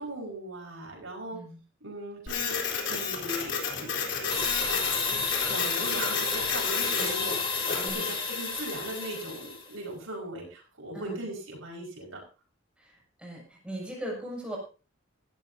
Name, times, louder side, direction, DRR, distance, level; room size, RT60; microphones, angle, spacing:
voice 1, 0.0-1.4 1.8-3.9 4.2-12.2, right 1 dB, 75° right, 0 dB, 5.2 m, -39 dB
Printer, 2.3-7.9, left 6 dB, 60° left, 3.8 m, -32 dB
sound 1, 4.3-9.7, left 4 dB, 25° left, 3.5 m, -31 dB
voice 2, 13.2-14.6, right 1 dB, 5° right, -3 dB, 6.7 m, -38 dB
18.0 x 14.0 x 2.8 m, 0.34 s
head